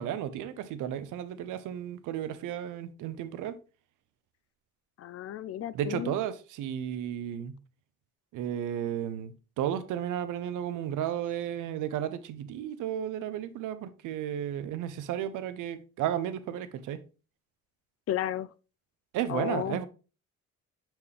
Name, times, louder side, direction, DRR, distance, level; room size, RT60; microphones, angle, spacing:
voice 1, 0.0-3.6 5.7-7.6 8.3-17.0 19.1-19.9, right 10 dB, 90° right, 0.8 m, -33 dB
voice 2, 5.0-6.2 18.1-18.5 19.3-19.8, left 11 dB, 55° left, 0.5 m, -33 dB
7.1 x 4.5 x 3.3 m
cardioid pair, 90°, 30 cm